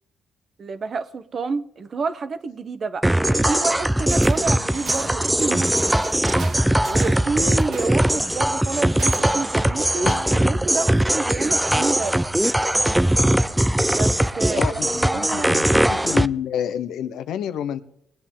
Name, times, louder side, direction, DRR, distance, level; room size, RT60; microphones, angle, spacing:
voice 1, 0.6-6.0 6.8-12.2 13.9-15.7, right 4 dB, 45° right, 12 dB, 1.0 m, -29 dB
sound 1, 3.0-16.3, right 1 dB, 10° right, 0.5 m, -20 dB
sound 2, 4.1-4.4 4.7-9.5, right 5 dB, 65° right, 1.5 m, -39 dB
Snare drum, 10.1-11.0 15.4-15.5, left 6 dB, 60° left, 1.3 m, -35 dB
voice 2, 14.5-14.9 15.2-17.8, left 9 dB, 80° left, 11 dB, 0.8 m, -28 dB
20.0 x 8.8 x 3.8 m, 0.75 s
cardioid pair, 90°, 0 cm